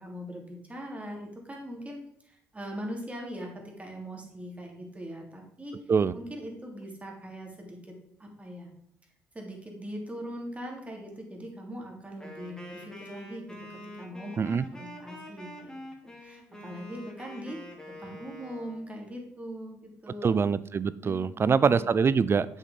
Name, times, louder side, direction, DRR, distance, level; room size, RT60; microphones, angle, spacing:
voice 1, 0.0-5.7 6.1-8.7 9.3-15.7 16.0-20.4 21.0-21.9, equal, 20° right, 0 dB, 3.0 m, -41 dB
Wind instrument woodwind instrument, 12.2-18.9, left 1 dB, 10° left, 2.7 m, -45 dB
voice 2, 20.2-22.5, right 5 dB, 40° right, 17 dB, 0.5 m, -24 dB
7.7 x 6.3 x 5.3 m, 0.70 s
hypercardioid pair, 55°, 7 cm